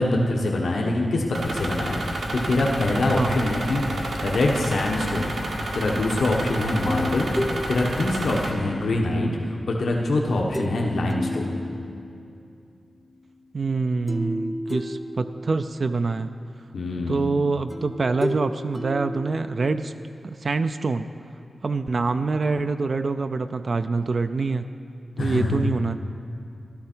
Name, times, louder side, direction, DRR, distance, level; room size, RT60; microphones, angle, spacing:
voice 1, 0.0-3.8 4.2-5.4 5.7-7.3 7.7-11.6 16.7-17.2 25.2-25.6, left 2 dB, 80° left, -1 dB, 1.2 m, -24 dB
sound 1, 1.3-8.5, right 1 dB, 85° right, 1.8 m, -30 dB
sound 2, 6.9-9.2 10.5-10.8 11.1-12.4 14.1-15.8 17.7-20.0, left 1 dB, 10° left, 0.7 m, -32 dB
voice 2, 13.5-16.3 17.1-19.9 20.2-21.1 21.6-24.7 25.2-26.0, right 3 dB, 50° right, 9 dB, 0.4 m, -25 dB
14.0 x 12.0 x 4.5 m, 2.5 s
wide cardioid pair, 105°, 0 cm